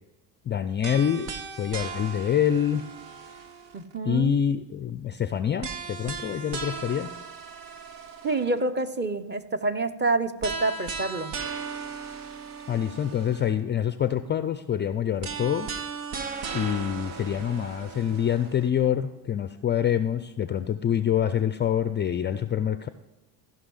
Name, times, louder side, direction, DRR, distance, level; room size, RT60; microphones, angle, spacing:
voice 1, 0.5-1.3 1.6-2.8 4.0-7.1 12.7-15.7 16.5-22.9, left 9 dB, 25° left, 11 dB, 0.4 m, -26 dB
sound 1, 0.8-4.0 5.6-8.6 10.4-13.6 15.2-18.7, right 5 dB, 70° right, 1.3 m, -37 dB
voice 2, 3.7-4.4 8.2-11.3, right 3 dB, 20° right, 9 dB, 0.8 m, -27 dB
14.5 x 5.6 x 5.5 m, 1.1 s
hypercardioid pair, 70°, 50 cm